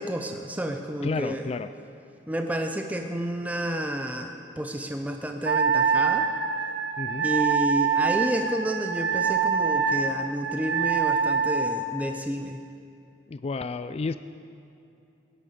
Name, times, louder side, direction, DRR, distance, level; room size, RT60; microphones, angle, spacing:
voice 1, 0.0-1.5 2.3-6.3 7.2-12.6, right 1 dB, 10° right, 4 dB, 0.6 m, -30 dB
voice 2, 1.0-1.7 7.0-7.3 13.3-14.2, left 4 dB, 35° left, 12 dB, 0.3 m, -31 dB
Wind instrument woodwind instrument, 5.4-11.8, right 6 dB, 85° right, 0.9 m, -25 dB
17.5 x 10.0 x 6.9 m, 2.8 s
head